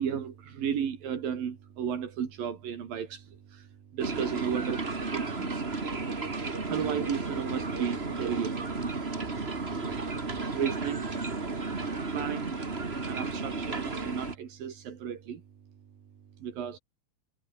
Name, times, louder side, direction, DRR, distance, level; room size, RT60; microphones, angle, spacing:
voice 1, 0.0-3.7 3.9-5.7 6.7-8.7 9.3-10.1 10.5-11.1 11.7-12.5 13.1-15.4 16.4-16.8, right 8 dB, 85° right, 4.6 m, -34 dB
sound 1, 4.0-14.3, right 3 dB, 20° right, 2.0 m, -33 dB
omnidirectional pair, 4.0 m